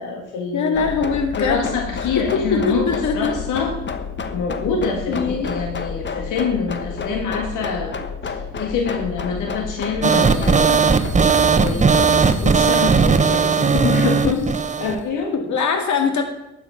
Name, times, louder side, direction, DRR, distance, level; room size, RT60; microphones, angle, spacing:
voice 1, 0.0-0.8 1.4-3.7 4.3-8.0 8.2-10.9 11.5-14.5 14.8-15.6, left 5 dB, 85° left, 2 dB, 1.8 m, -26 dB
voice 2, 0.5-1.6 2.5-3.3 5.1-5.5 15.3-16.2, left 5 dB, 70° left, 6 dB, 2.1 m, -21 dB
sound 1, 0.7-14.5, left 5 dB, 40° left, 1.2 m, -30 dB
sound 2, 10.0-15.0, right 5 dB, 25° right, 0.9 m, -17 dB
12.0 x 8.3 x 5.7 m, 0.92 s
cardioid pair, 90°, 30 cm